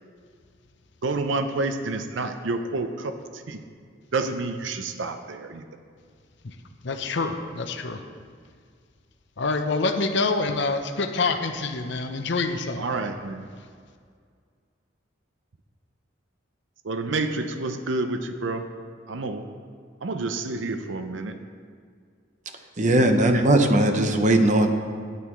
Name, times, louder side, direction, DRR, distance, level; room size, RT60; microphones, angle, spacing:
voice 1, 1.0-3.6 4.1-5.6 12.8-13.4 16.8-18.7 19.1-19.4 20.0-21.3 22.9-23.0, right 3 dB, 75° right, 7 dB, 0.6 m, -29 dB
voice 2, 6.8-8.0 9.4-12.9, left 3 dB, 65° left, 6 dB, 0.7 m, -26 dB
voice 3, 22.8-24.7, right 1 dB, 40° right, 6 dB, 0.8 m, -19 dB
12.0 x 9.5 x 3.1 m, 2.1 s
head